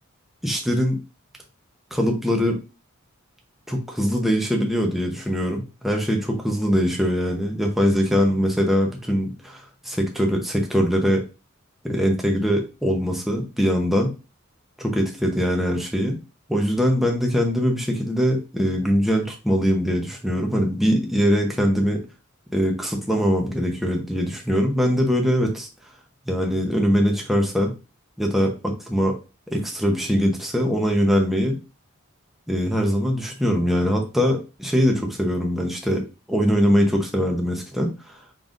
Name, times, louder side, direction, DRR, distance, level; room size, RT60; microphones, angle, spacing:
voice 1, 0.4-1.0 1.9-2.6 3.7-11.2 11.8-14.1 14.8-16.2 16.5-22.0 22.5-25.7 26.3-27.7 28.2-29.1 29.5-31.6 32.5-36.0 36.3-38.2, equal, ahead, 1 dB, 0.8 m, -22 dB
5.4 x 3.9 x 2.5 m, 0.30 s
head